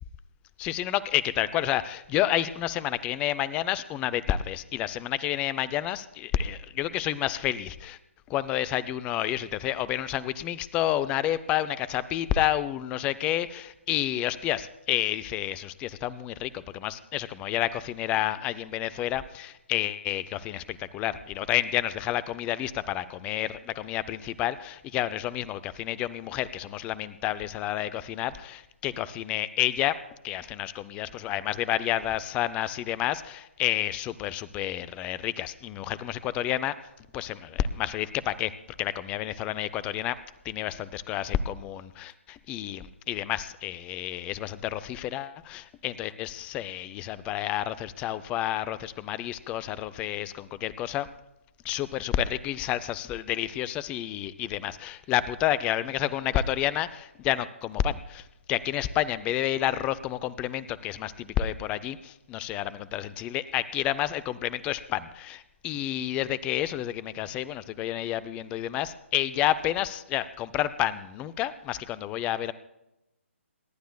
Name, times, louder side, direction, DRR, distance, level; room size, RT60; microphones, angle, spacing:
voice 1, 0.6-8.0 8.3-30.0 30.2-36.8 37.1-38.5 38.8-40.2 40.4-51.1 51.6-72.5, left 12 dB, 15° left, 16 dB, 0.5 m, -30 dB
27.5 x 11.5 x 2.3 m, 0.90 s
figure-of-eight pair, 135°, 7 cm